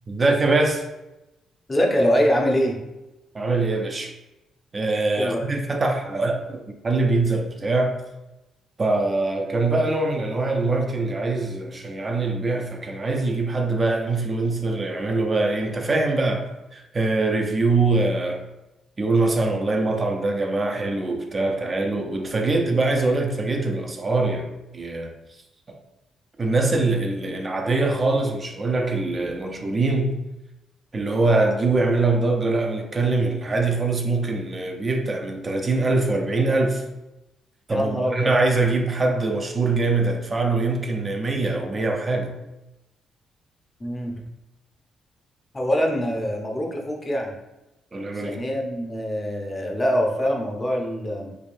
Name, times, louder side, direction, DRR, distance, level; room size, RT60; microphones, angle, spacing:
voice 1, 0.1-0.8 3.3-4.1 4.7-8.0 8.8-18.4 19.0-24.5 24.7-25.1 25.7-25.8 26.4-30.2 30.9-36.8 37.7-42.4 47.9-48.4, right 3 dB, 30° right, 0.4 m, -23 dB
voice 2, 1.7-2.8 5.2-5.5 37.7-38.3 43.8-44.1 45.5-47.3 48.1-51.3, equal, 20° left, 0.7 m, -24 dB
3.2 x 3.1 x 2.6 m
cardioid pair, 90°, 0 cm